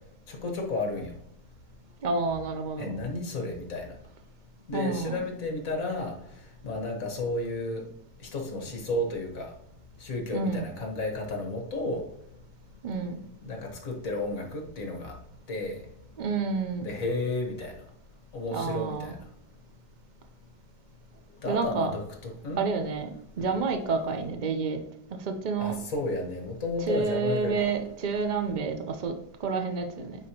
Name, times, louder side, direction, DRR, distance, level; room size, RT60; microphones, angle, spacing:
voice 1, 0.3-1.1 2.8-3.9 4.7-7.8 8.2-9.5 10.0-12.0 13.4-15.2 15.5-15.8 16.8-17.8 18.3-19.2 21.4-22.6 23.4-23.5 25.6-27.7, left 2 dB, 50° left, 2 dB, 1.7 m, -32 dB
voice 2, 2.0-2.9 4.7-5.2 10.3-10.7 12.8-13.2 16.2-16.9 18.5-19.1 21.4-21.9 22.6-24.8 25.1-25.7 26.9-29.2 29.4-30.2, right 4 dB, 65° right, 5 dB, 0.4 m, -29 dB
9.2 x 4.3 x 2.9 m, 0.74 s
omnidirectional pair, 1.9 m